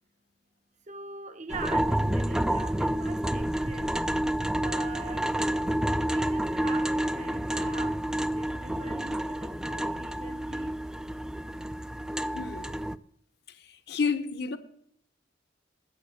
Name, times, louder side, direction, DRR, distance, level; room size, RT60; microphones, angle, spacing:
voice 1, 0.9-4.0 4.6-8.1 8.3-10.8, right 4 dB, 40° right, 0.7 m, -43 dB
sound 1, 1.5-13.0, right 1 dB, 5° right, 0.3 m, -29 dB
voice 2, 12.3-12.8 13.9-14.6, left 5 dB, 65° left, 0.9 m, -30 dB
9.5 x 7.8 x 6.5 m
head